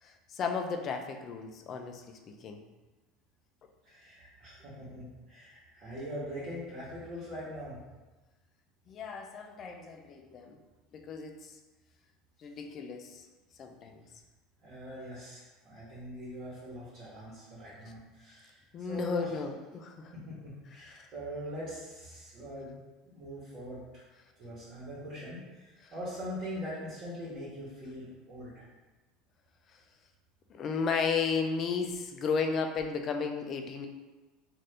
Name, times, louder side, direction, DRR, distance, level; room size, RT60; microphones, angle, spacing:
voice 1, 0.0-2.6 8.9-10.6 10.9-11.5 12.4-13.2 13.6-14.0 18.7-20.1 20.7-21.1 25.8-25.9 30.5-33.9, left 5 dB, 40° left, 5 dB, 0.4 m, -34 dB
voice 2, 3.8-7.8 14.6-19.3 20.1-22.8 23.1-24.0 24.4-28.6, equal, 50° right, -9 dB, 1.1 m, -42 dB
2.7 x 2.5 x 3.3 m, 1.2 s
supercardioid pair, 130°, 0 cm